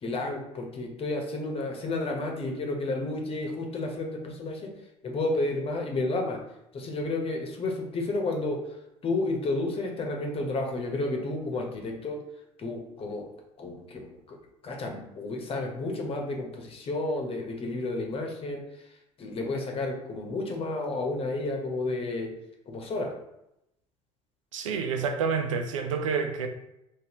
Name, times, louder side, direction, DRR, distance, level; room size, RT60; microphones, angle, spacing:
voice 1, 0.0-4.7 5.0-6.4 6.7-8.6 9.0-12.2 12.6-13.3 13.6-14.4 14.6-18.6 19.2-22.3 22.7-23.1, left 2 dB, 35° left, 1 dB, 1.0 m, -31 dB
voice 2, 24.5-26.5, right 5 dB, 85° right, 6 dB, 0.5 m, -28 dB
3.9 x 2.7 x 2.9 m, 0.84 s
hypercardioid pair, 70°, 16 cm